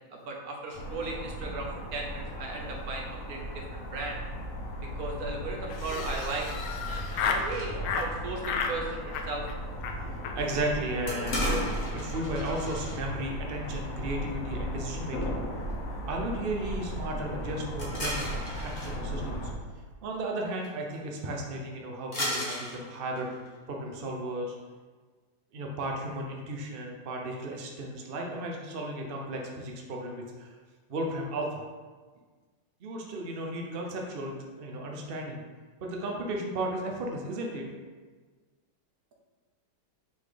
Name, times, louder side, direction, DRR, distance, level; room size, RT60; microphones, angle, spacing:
voice 1, 0.1-4.2 4.8-9.5, right 3 dB, 55° right, 0 dB, 1.2 m, -37 dB
sound 1, 0.7-19.5, equal, 50° left, 1.1 m, -36 dB
Laughter, 5.7-7.5 7.8-8.1 8.4-8.8 9.1-9.5 9.8-10.0 10.2-10.4 10.6-10.7 11.0-11.1 11.4-11.7, left 6 dB, 85° left, 1.5 m, -32 dB
sound 2, 5.9-7.7 11.1-13.0 17.8-19.0 20.6-20.7 20.9-21.2 22.1-23.6, left 1 dB, 25° left, 1.2 m, -37 dB
voice 2, 9.9-11.6 11.9-15.4 16.1-19.5 20.0-23.3 23.7-24.5 25.5-30.6 30.9-31.6 32.8-35.4 35.8-37.6, right 1 dB, 80° right, 0 dB, 0.5 m, -34 dB
5.8 x 3.9 x 4.9 m, 1.4 s
omnidirectional pair, 2.2 m